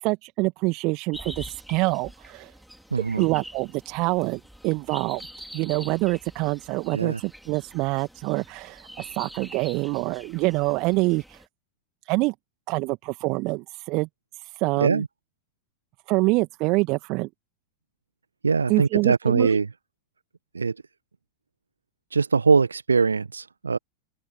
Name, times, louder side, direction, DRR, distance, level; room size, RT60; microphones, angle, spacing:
voice 1, 0.0-2.5 3.2-5.3 5.5-11.4 12.1-12.3 12.7-14.1 14.4-15.0 16.1-17.3 18.7-19.5, right 24 dB, 40° right, 1.9 m, -26 dB
sound 1, 1.1-11.5, equal, ahead, 4.7 m, -45 dB
voice 2, 2.9-3.3 6.9-7.2 14.8-15.1 18.4-19.7 20.5-20.7 22.1-23.8, right 5 dB, 75° right, 1.2 m, -22 dB
open air
figure-of-eight pair, 90°, 0 cm